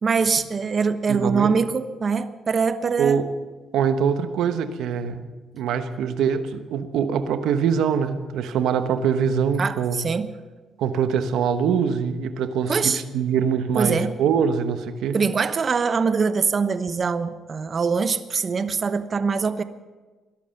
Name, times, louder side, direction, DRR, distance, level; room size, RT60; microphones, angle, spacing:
voice 1, 0.0-3.2 9.6-10.3 12.7-13.0 13.8-14.2 15.1-19.6, right 5 dB, 40° right, 11 dB, 1.0 m, -23 dB
voice 2, 1.1-1.5 3.0-3.3 3.7-5.3 5.5-10.0 10.8-15.2, right 7 dB, 85° right, 9 dB, 1.1 m, -23 dB
20.5 x 12.0 x 5.8 m, 1.3 s
cardioid pair, 90°, 0 cm